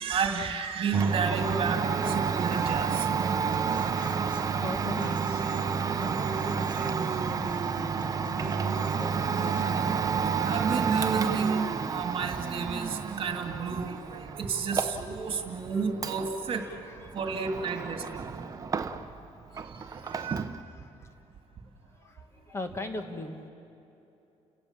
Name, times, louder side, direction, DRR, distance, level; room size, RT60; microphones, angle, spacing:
voice 1, 0.0-3.1 10.5-16.6 17.1-18.3 19.6-20.4, right 5 dB, 50° right, 5 dB, 2.1 m, -31 dB
Domestic sounds home sounds, 0.9-19.3 19.5-20.6, right 6 dB, 30° right, 0.9 m, -30 dB
Human voice / Acoustic guitar, 2.0-10.0, right 2 dB, 10° right, 1.8 m, -47 dB
voice 2, 4.6-9.8 15.4-15.8 16.5-17.4 17.7-17.8 18.6-18.7 19.5-20.1 20.8-21.1 21.9-23.5, left 2 dB, 20° left, 7 dB, 1.4 m, -41 dB
30.0 x 18.0 x 7.3 m, 2.9 s
cardioid pair, 150°, 12 cm